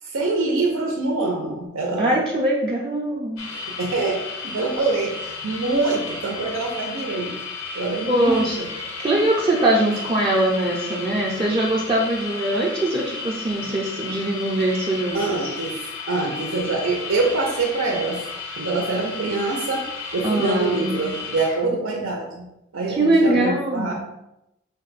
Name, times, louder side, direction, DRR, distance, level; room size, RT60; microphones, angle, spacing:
voice 1, 0.0-2.2 3.5-7.3 7.7-8.7 15.1-15.8 16.1-18.2 18.6-22.4 22.7-23.9, right 3 dB, 80° right, -1 dB, 0.6 m, -25 dB
voice 2, 2.0-3.5 8.1-8.6 9.0-15.4 20.2-21.0 22.9-23.9, right 1 dB, 25° right, -5 dB, 0.5 m, -22 dB
sound 1, 3.4-21.7, left 4 dB, 75° left, 0.7 m, -34 dB
5.1 x 2.2 x 4.0 m, 0.88 s
head